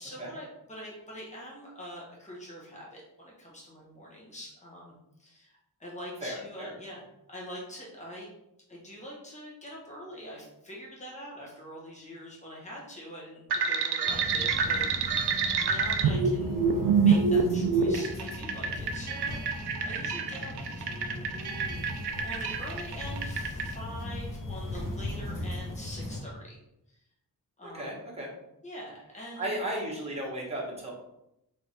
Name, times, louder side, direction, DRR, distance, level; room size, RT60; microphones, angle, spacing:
voice 1, 0.0-7.0 7.3-8.3 8.7-16.7 16.9-20.5 20.8-21.8 22.2-26.6 26.9-27.0 27.6-28.0 28.6-29.6 30.1-30.2, equal, 20° left, -5 dB, 1.3 m, -44 dB
voice 2, 6.2-6.7 27.6-28.3 29.4-30.9, right 1 dB, 15° right, -4 dB, 1.2 m, -35 dB
sound 1, 13.5-23.7, right 5 dB, 85° right, 0.6 m, -27 dB
sound 2, 14.1-26.2, left 1 dB, 55° left, 1.0 m, -38 dB
3.4 x 3.3 x 4.1 m, 0.84 s
wide cardioid pair, 140°, 39 cm